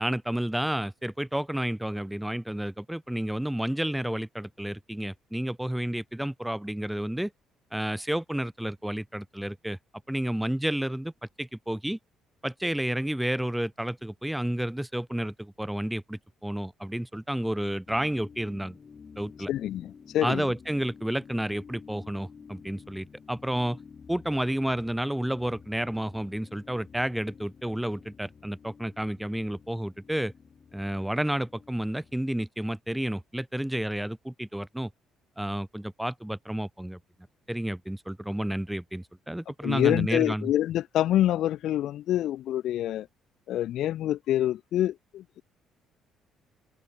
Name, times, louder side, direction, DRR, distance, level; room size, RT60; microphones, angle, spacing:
voice 1, 0.0-7.3 7.7-9.8 10.1-11.1 11.4-12.0 12.4-18.8 19.2-19.5 20.2-23.8 24.1-30.3 30.7-34.9 35.4-37.0 37.5-40.5, right 1 dB, 5° right, 3.2 m, -31 dB
sound 1, 17.9-32.2, left 6 dB, 40° left, 3.0 m, -51 dB
voice 2, 19.5-20.5 39.6-43.1 43.5-45.4, left 12 dB, 70° left, 1.3 m, -26 dB
cardioid pair, 90°, 0 cm